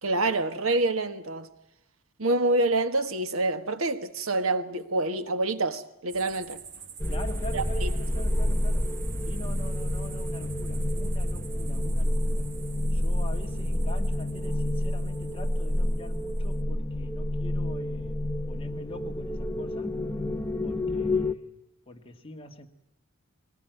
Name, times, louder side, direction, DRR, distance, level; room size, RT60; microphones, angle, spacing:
voice 1, 0.0-1.5 2.2-6.6 7.5-7.9, right 2 dB, 80° right, 1.6 m, -27 dB
sound 1, 6.1-16.6, right 7 dB, 60° right, 1.8 m, -47 dB
sound 2, 7.0-21.3, left 1 dB, 10° left, 0.9 m, -29 dB
voice 2, 7.1-9.0 9.3-12.5 12.9-18.2 18.5-20.0 20.6-21.6 21.9-22.7, left 1 dB, 25° left, 2.1 m, -44 dB
23.5 x 19.0 x 9.3 m
head